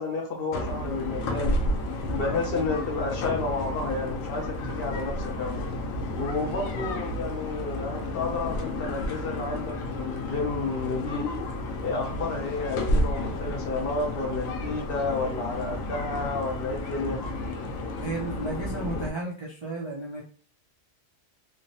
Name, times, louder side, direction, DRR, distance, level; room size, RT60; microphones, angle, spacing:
voice 1, 0.0-1.6 2.0-5.6 6.2-11.2 11.8-17.2, left 3 dB, 60° left, 0 dB, 0.7 m, -31 dB
sound 1, 0.5-19.1, left 1 dB, 85° left, 1.0 m, -31 dB
voice 2, 18.0-20.2, right 3 dB, 45° right, -4 dB, 0.3 m, -33 dB
3.2 x 2.0 x 2.7 m, 0.44 s
omnidirectional pair, 1.3 m